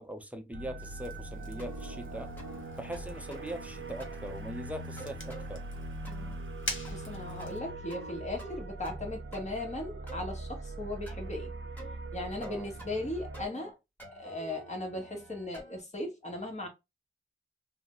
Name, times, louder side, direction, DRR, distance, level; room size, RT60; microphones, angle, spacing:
voice 1, 0.0-2.3 2.8-5.6 12.4-12.7, right 1 dB, 5° right, 0.6 m, -41 dB
sound 1, 0.5-13.5, right 2 dB, 80° right, 0.5 m, -42 dB
Fire, 0.8-7.6, left 2 dB, 70° left, 0.9 m, -45 dB
sound 2, 1.6-2.0 2.4-2.6 2.9-3.6 4.0-4.3 5.0-5.5 6.0-6.4 6.8-7.1 7.4-8.1 8.4-9.0 9.3-10.2 11.1-11.3 11.8-12.0 12.4-13.1 13.3-13.7 14.0-15.8, right 1 dB, 10° left, 1.3 m, -48 dB
voice 2, 6.9-11.5 12.1-13.7 14.1-16.7, left 2 dB, 35° left, 1.2 m, -37 dB
2.6 x 2.1 x 3.5 m
wide cardioid pair, 65°, 20 cm